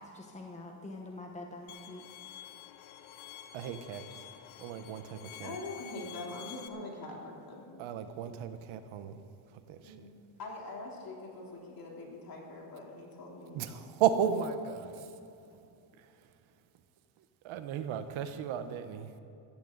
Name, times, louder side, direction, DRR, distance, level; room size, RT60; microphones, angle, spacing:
voice 1, 0.0-2.0, left 2 dB, 15° left, 1 dB, 1.2 m, -45 dB
Bowed string instrument, 1.7-6.7, left 11 dB, 80° left, 1.0 m, -49 dB
voice 2, 3.5-4.0 4.6-5.5 7.8-9.1 9.7-9.8 13.5-13.7 14.0-15.0 17.4-19.1, right 8 dB, 75° right, 10 dB, 1.0 m, -33 dB
voice 3, 5.4-7.9 9.8-10.1 10.4-13.9, left 2 dB, 45° left, -2 dB, 3.5 m, -44 dB
16.0 x 14.5 x 4.0 m, 2.7 s
cardioid pair, 110°, 48 cm